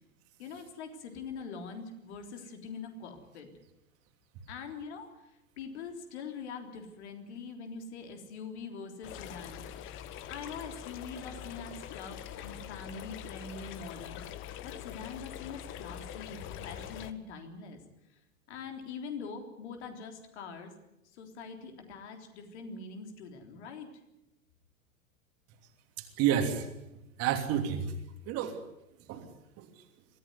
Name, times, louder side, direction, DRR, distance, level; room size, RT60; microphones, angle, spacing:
voice 1, 0.4-3.5 4.5-9.6 10.3-14.2 14.6-17.8 18.5-20.7 21.1-23.9, left 5 dB, 50° left, 5 dB, 3.6 m, -43 dB
sound 1, 9.0-17.1, left 10 dB, 30° left, 1.2 m, -44 dB
voice 2, 26.0-26.7 27.2-27.9 28.3-28.5 29.1-29.3 29.6-29.7, right 9 dB, 35° right, 6 dB, 3.1 m, -29 dB
23.5 x 15.0 x 9.6 m, 0.90 s
figure-of-eight pair, 95°, 41 cm